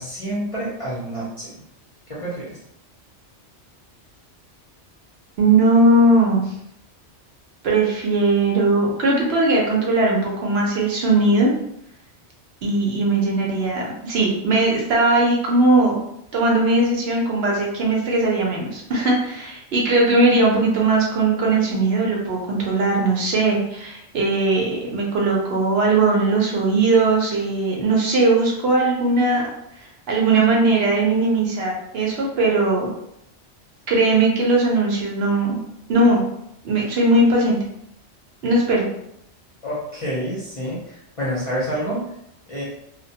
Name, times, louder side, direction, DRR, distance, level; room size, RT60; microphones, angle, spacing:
voice 1, 0.0-1.5 2.1-2.6 39.6-42.0 42.5-42.6, equal, 40° left, -7 dB, 0.6 m, -28 dB
voice 2, 5.4-6.4 7.6-11.5 12.6-16.0 16.3-29.4 30.1-32.9 33.9-35.6 35.9-36.2 36.6-37.6 38.4-38.8, right 2 dB, 65° right, -2 dB, 0.8 m, -19 dB
2.2 x 2.1 x 2.7 m, 0.77 s
omnidirectional pair, 1.2 m